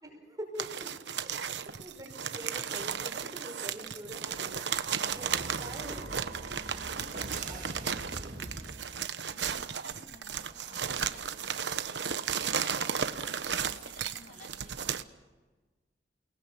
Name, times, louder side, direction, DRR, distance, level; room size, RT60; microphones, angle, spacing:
voice 1, 0.0-0.9 1.2-4.6 5.0-5.2 5.6-6.3 7.5-7.6 8.2-8.5, right 1 dB, 20° right, 0 dB, 5.7 m, -45 dB
sound 1, 0.6-15.0, right 7 dB, 80° right, 1.1 m, -34 dB
Breathing, 4.2-4.9 5.7-6.7 7.6-8.0 9.2-9.3 9.5-9.6 10.3-10.9, left 2 dB, 25° left, 7.1 m, -61 dB
sound 2, 4.2-9.2, right 2 dB, 45° right, 2.7 m, -44 dB
voice 2, 4.9-5.6 6.9-14.9, left 2 dB, 50° left, 1 dB, 4.5 m, -55 dB
29.0 x 19.5 x 7.1 m, 1.3 s
head